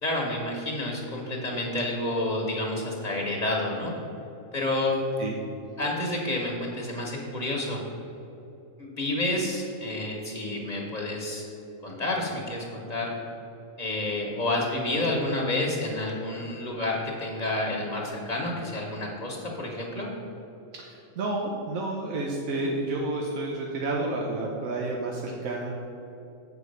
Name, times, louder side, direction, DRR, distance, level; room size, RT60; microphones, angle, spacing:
voice 1, 0.0-3.9 4.5-4.9 5.8-7.8 8.8-11.5 11.8-13.1 13.8-20.1, left 1 dB, 35° left, -2 dB, 1.2 m, -29 dB
voice 2, 20.7-25.7, right 2 dB, 85° right, -1 dB, 1.3 m, -30 dB
7.9 x 4.9 x 6.6 m, 3.0 s
omnidirectional pair, 1.4 m